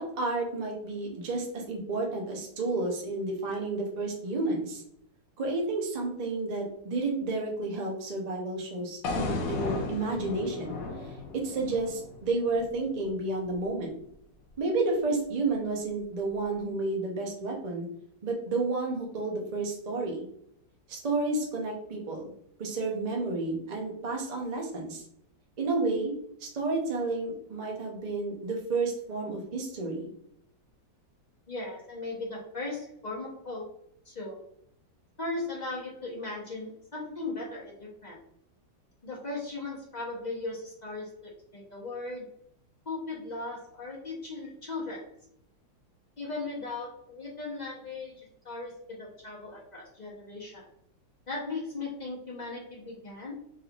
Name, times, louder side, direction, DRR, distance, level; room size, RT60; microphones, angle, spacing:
voice 1, 0.0-4.8 5.4-10.8 11.3-13.9 14.6-17.9 18.2-20.3 20.9-22.3 22.6-25.0 25.6-26.1 26.4-30.1, right 3 dB, 65° right, 0 dB, 0.4 m, -31 dB
sound 1, 9.0-13.2, left 4 dB, 75° left, 0.8 m, -35 dB
voice 2, 31.5-33.7 34.0-34.4 35.2-38.2 39.0-42.3 42.8-45.0 46.2-48.1 48.4-50.6 51.3-53.4, left 3 dB, 35° left, -5 dB, 0.7 m, -37 dB
4.3 x 3.4 x 2.4 m, 0.71 s
omnidirectional pair, 2.1 m